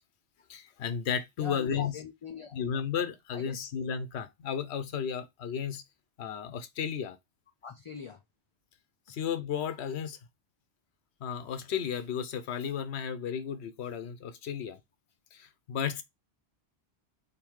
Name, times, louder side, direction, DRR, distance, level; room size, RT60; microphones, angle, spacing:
voice 1, 0.5-1.9 2.5-5.8 6.2-7.2 9.1-10.2 11.2-14.8 15.3-16.0, left 7 dB, 90° left, 1.0 m, -33 dB
voice 2, 1.4-2.6 3.3-3.6 7.6-8.2, left 6 dB, 55° left, 0.3 m, -42 dB
3.7 x 2.7 x 4.5 m
omnidirectional pair, 1.1 m